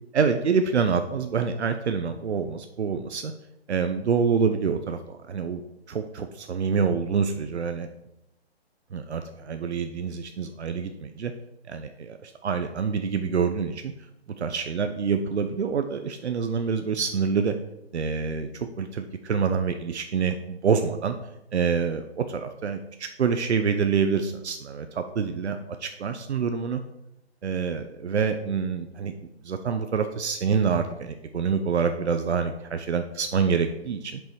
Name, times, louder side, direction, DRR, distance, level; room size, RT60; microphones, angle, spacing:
voice 1, 0.1-3.3 3.7-5.6 5.9-7.9 8.9-11.3 11.7-13.9 14.4-17.5 17.9-21.2 21.5-26.8 27.4-29.1 29.4-34.2, right 6 dB, 90° right, 7 dB, 0.8 m, -26 dB
7.5 x 5.4 x 4.7 m, 0.87 s
hypercardioid pair, 175°, 33 cm